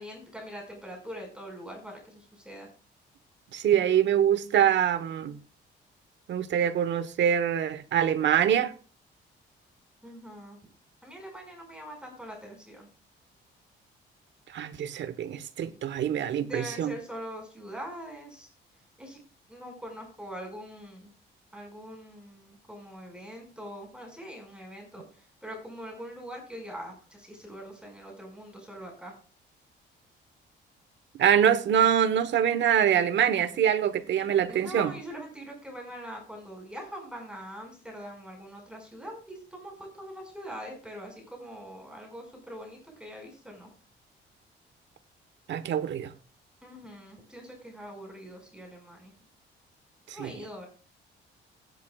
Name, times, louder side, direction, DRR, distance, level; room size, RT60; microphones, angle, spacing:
voice 1, 0.0-2.7 10.0-10.6 11.0-12.9 16.4-18.5 19.0-19.2 19.5-21.1 21.5-29.2 34.5-43.7 46.6-49.1 50.1-50.7, equal, 5° right, 5.5 m, -43 dB
voice 2, 3.5-5.4 6.3-8.7 14.5-16.9 31.2-34.9 45.5-46.1 50.1-50.3, right 9 dB, 65° right, 1.2 m, -24 dB
16.5 x 10.5 x 2.4 m
cardioid pair, 90°, 20 cm